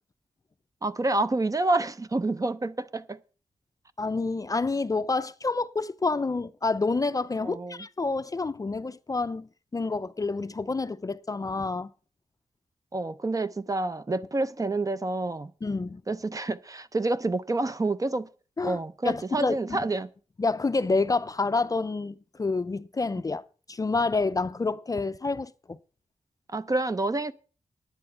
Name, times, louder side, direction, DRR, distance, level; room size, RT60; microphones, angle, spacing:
voice 1, 0.8-3.2 7.4-7.8 12.9-15.5 16.1-18.3 18.6-20.1 26.5-27.3, right 2 dB, 25° right, 0.6 m, -28 dB
voice 2, 4.0-11.9 15.6-16.0 18.6-18.8 19.0-19.8 20.4-23.4 23.7-25.8, left 3 dB, 25° left, 0.5 m, -28 dB
10.0 x 9.5 x 5.6 m
wide cardioid pair, 135°, 13 cm